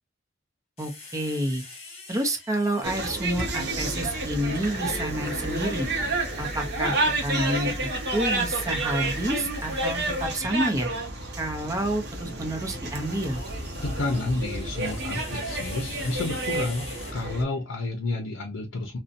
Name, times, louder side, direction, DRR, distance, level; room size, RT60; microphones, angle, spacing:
sound 1, 0.8-4.1 7.0-8.4 10.2-10.4 12.5-17.6, left 3 dB, 30° left, 0.9 m, -46 dB
voice 1, 0.8-1.6 2.1-5.9 6.4-7.0 7.2-10.9 11.4-13.4, right 1 dB, 15° right, 0.5 m, -29 dB
sound 2, 2.8-17.4, right 2 dB, 60° right, 0.6 m, -30 dB
sound 3, 3.0-10.3, right 1 dB, 35° right, 0.9 m, -38 dB
voice 2, 13.8-16.9 17.1-19.0, left 2 dB, 80° left, 0.5 m, -30 dB
2.6 x 2.1 x 2.5 m
head